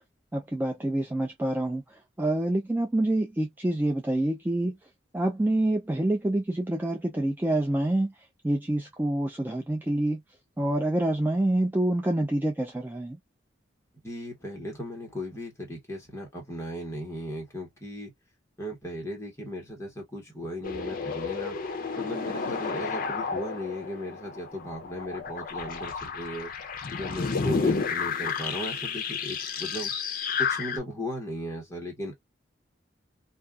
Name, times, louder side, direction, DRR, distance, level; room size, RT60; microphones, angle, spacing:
voice 1, 0.3-1.8 2.2-4.8 5.1-8.1 8.4-10.2 10.6-13.2, right 1 dB, 10° right, 0.3 m, -27 dB
voice 2, 14.0-18.1 18.6-21.6 21.9-26.5 27.0-29.9 30.4-32.1, left 1 dB, 15° left, 1.3 m, -36 dB
sound 1, 20.6-30.8, left 5 dB, 50° left, 0.6 m, -31 dB
2.5 x 2.3 x 2.3 m
head